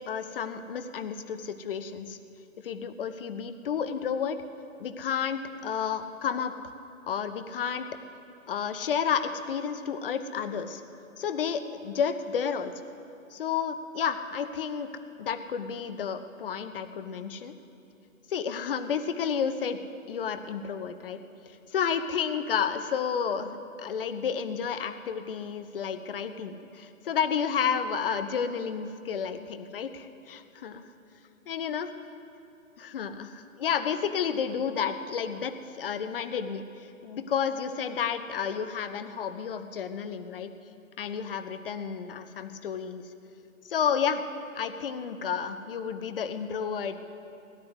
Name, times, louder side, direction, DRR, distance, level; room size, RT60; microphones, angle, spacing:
voice 1, 0.1-2.2 2.6-4.4 4.8-6.7 7.1-7.9 8.5-10.8 11.2-12.7 13.3-14.9 15.2-17.5 18.3-19.8 20.1-21.2 21.7-30.8 31.5-31.9 32.8-36.6 37.0-40.5 41.0-43.1 43.7-44.2 44.5-47.0, left 7 dB, 40° left, 10 dB, 0.9 m, -31 dB
17.0 x 9.6 x 8.0 m, 2.6 s
figure-of-eight pair, 135°, 41 cm